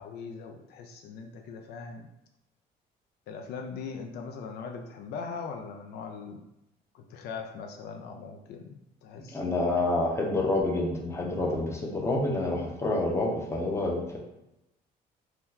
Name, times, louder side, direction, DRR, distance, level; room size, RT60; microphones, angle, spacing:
voice 1, 0.0-2.1 3.3-6.4 6.9-9.7, left 5 dB, 75° left, 3 dB, 0.4 m, -40 dB
voice 2, 9.3-14.2, left 2 dB, 15° left, 0 dB, 0.6 m, -28 dB
2.8 x 2.2 x 3.6 m, 0.89 s
cardioid pair, 110°, 17 cm